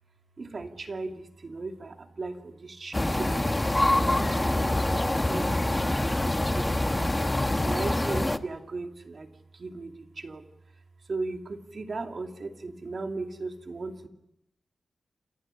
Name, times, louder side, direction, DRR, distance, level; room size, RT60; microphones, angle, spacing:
voice 1, 0.4-3.4 3.9-7.1 7.6-10.4 11.1-14.1, right 3 dB, 45° right, 4 dB, 2.5 m, -37 dB
sound 1, 2.9-8.4, left 1 dB, 15° left, 1.0 m, -25 dB
30.0 x 27.5 x 5.7 m, 0.79 s
wide cardioid pair, 125°, 0 cm